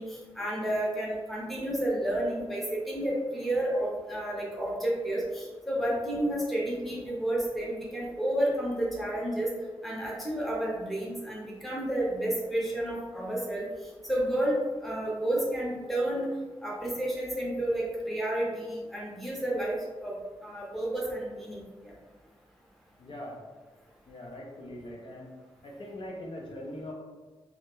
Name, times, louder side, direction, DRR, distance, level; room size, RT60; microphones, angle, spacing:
voice 1, 0.0-9.5 9.8-13.7 14.0-16.3 16.6-19.7 20.0-20.1 20.4-21.9, right 1 dB, ahead, -5 dB, 0.6 m, -31 dB
voice 2, 23.0-23.4 24.1-25.3 25.6-26.9, left 1 dB, 60° left, -2 dB, 0.5 m, -41 dB
2.2 x 2.0 x 2.9 m, 1.3 s
wide cardioid pair, 120°, 10 cm